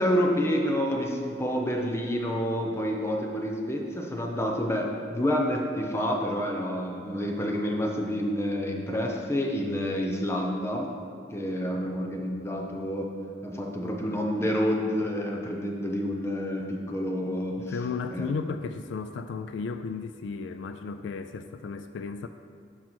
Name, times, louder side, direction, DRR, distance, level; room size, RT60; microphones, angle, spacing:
voice 1, 0.0-10.9 11.3-13.1 13.4-17.6 18.1-18.3, equal, 15° left, 0 dB, 0.9 m, -28 dB
voice 2, 17.6-22.3, left 5 dB, 80° left, 9 dB, 0.3 m, -34 dB
12.0 x 4.7 x 4.5 m, 2.2 s
head